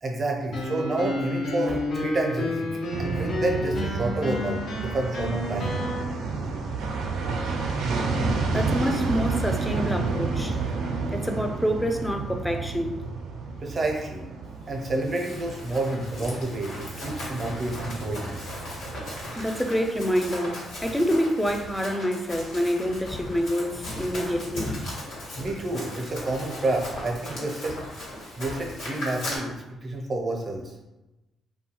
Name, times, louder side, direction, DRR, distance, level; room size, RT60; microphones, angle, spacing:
voice 1, 0.0-2.7 3.0-5.7 8.4-8.5 13.6-14.3 14.7-18.4 25.4-27.8 28.4-30.7, right 2 dB, 40° right, 1 dB, 0.6 m, -29 dB
sound 1, 0.5-6.0, left 1 dB, 65° left, 0.6 m, -30 dB
sound 2, 2.9-20.4 20.7-20.8, right 4 dB, 85° right, 0.4 m, -31 dB
voice 2, 8.5-10.6 11.1-12.9 19.4-24.7, equal, 5° left, 4 dB, 0.3 m, -27 dB
Run, 14.8-29.4, left 1 dB, 85° left, 1.1 m, -37 dB
2.6 x 2.2 x 2.9 m, 1.0 s
cardioid pair, 90°, 0 cm